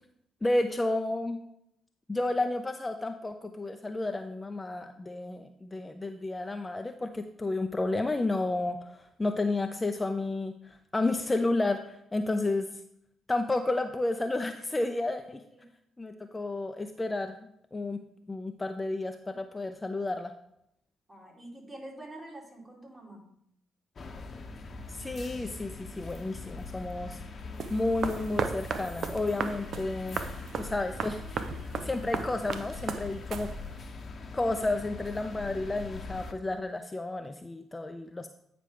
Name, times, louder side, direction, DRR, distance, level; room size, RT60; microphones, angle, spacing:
voice 1, 0.4-1.4 2.1-12.8 13.3-15.4 16.0-18.0 18.3-20.3 24.9-27.2 27.7-30.2 30.5-31.2 31.8-33.5 34.3-38.3, left 2 dB, 20° left, 7 dB, 0.5 m, -31 dB
voice 2, 21.1-23.3, right 1 dB, 25° right, -2 dB, 2.7 m, -46 dB
sound 1, 24.0-36.3, left 3 dB, 45° left, 0.8 m, -42 dB
sound 2, 27.6-33.9, right 5 dB, 60° right, 0.5 m, -36 dB
9.1 x 5.0 x 3.4 m, 0.75 s
hypercardioid pair, 45°, 0 cm